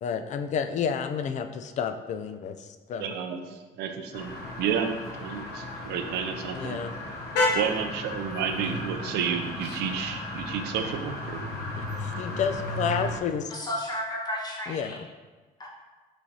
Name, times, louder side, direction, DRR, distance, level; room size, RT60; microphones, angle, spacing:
voice 1, 0.0-3.1 6.5-6.9 11.8-13.5 14.7-15.0, left 7 dB, 45° left, 8 dB, 0.4 m, -30 dB
voice 2, 3.0-4.3 4.6-6.8 7.5-11.6, right 7 dB, 80° right, 5 dB, 0.5 m, -31 dB
sound 1, 4.1-13.2, left 2 dB, 75° left, 0.8 m, -33 dB
voice 3, 13.5-15.0 15.6-15.7, left 1 dB, 25° left, -3 dB, 1.2 m, -33 dB
6.1 x 3.2 x 2.7 m, 1.3 s
cardioid pair, 110°, 17 cm